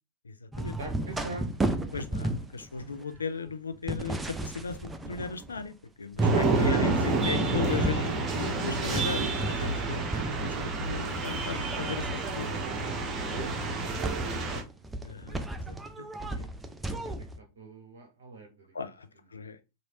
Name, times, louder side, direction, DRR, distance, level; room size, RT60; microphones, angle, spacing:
voice 1, 0.3-0.8 1.9-12.6 15.0-16.1 16.4-16.5 18.7-19.1 19.3-19.6, left 5 dB, 75° left, 0.4 m, -37 dB
sound 1, 0.5-5.7 6.1-6.8 7.2-9.8 10.1-10.9 11.5-17.4, right 1 dB, 10° right, 0.4 m, -34 dB
voice 2, 0.8-1.6 6.5-6.8 9.2-9.4 13.3-14.8 16.9-18.8, right 3 dB, 60° right, 0.7 m, -44 dB
sound 2, 6.2-14.6, right 3 dB, 30° right, 0.8 m, -29 dB
3.0 x 2.6 x 2.8 m
figure-of-eight pair, 90°, 0 cm